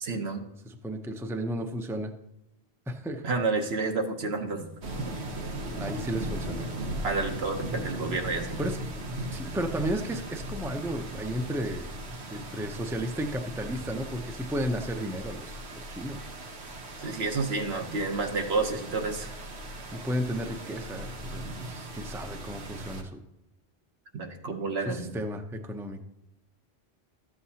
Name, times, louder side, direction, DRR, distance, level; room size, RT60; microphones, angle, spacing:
voice 1, 0.0-0.4 3.2-4.7 7.0-8.6 17.0-19.4 24.1-25.1, right 3 dB, 75° right, 4 dB, 1.2 m, -30 dB
voice 2, 0.6-2.1 2.9-3.2 5.8-6.7 8.6-8.8 9.3-11.9 12.3-16.2 19.9-23.2 24.9-26.0, equal, 5° right, 5 dB, 0.5 m, -33 dB
sound 1, 4.8-23.0, right 1 dB, 90° right, 1.3 m, -38 dB
13.0 x 7.7 x 2.8 m, 0.88 s
omnidirectional pair, 1.1 m